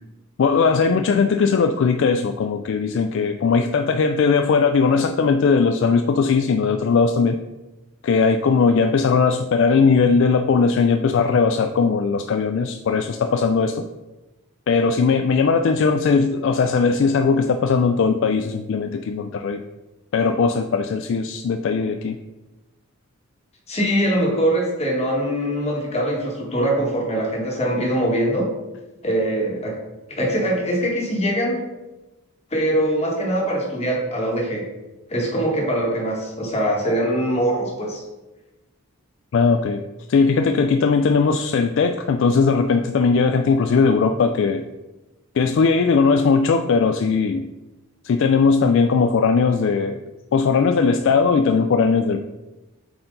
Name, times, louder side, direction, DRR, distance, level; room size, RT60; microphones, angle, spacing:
voice 1, 0.4-7.4 8.0-13.9 14.7-19.6 20.1-22.2 39.3-39.8 40.1-44.6 45.4-47.5 48.0-50.0 50.3-52.2, left 5 dB, 55° left, 7 dB, 0.3 m, -19 dB
voice 2, 23.7-28.5 29.0-29.8 30.1-31.6 32.5-34.6 35.1-38.0, right 1 dB, 30° left, -1 dB, 1.5 m, -22 dB
7.6 x 4.4 x 3.9 m, 1.1 s
head